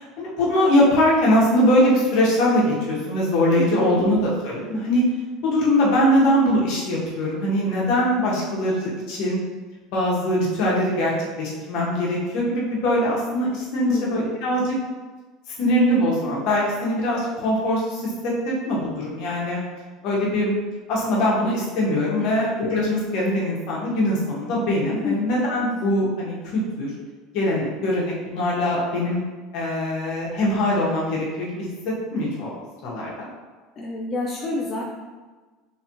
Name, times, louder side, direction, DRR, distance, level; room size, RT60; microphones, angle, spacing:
voice 1, 0.0-5.0 5.4-9.4 9.9-11.1 11.4-14.7 15.6-19.6 20.0-20.6 20.9-26.9 27.3-29.2 29.5-31.7 32.1-32.5 32.8-33.3, left 1 dB, 65° left, -4 dB, 1.2 m, -22 dB
voice 2, 3.6-4.1 13.8-14.2 14.6-14.7 22.2-22.4 24.9-25.2 33.8-34.8, left 3 dB, 35° left, -1 dB, 0.4 m, -28 dB
3.3 x 3.3 x 3.0 m, 1.4 s
supercardioid pair, 110°, 0 cm